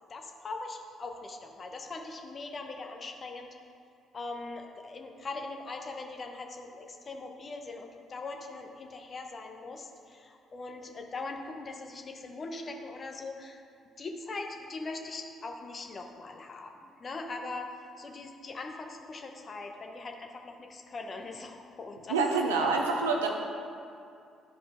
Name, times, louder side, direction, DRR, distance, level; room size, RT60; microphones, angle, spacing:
voice 1, 0.1-3.5 4.1-13.6 14.0-17.7 18.0-22.2 22.5-22.7, left 3 dB, 40° left, 3 dB, 1.0 m, -41 dB
voice 2, 22.1-23.3, right 4 dB, 85° right, 1 dB, 0.7 m, -26 dB
12.0 x 4.9 x 3.7 m, 2.4 s
hypercardioid pair, 45°, 0 cm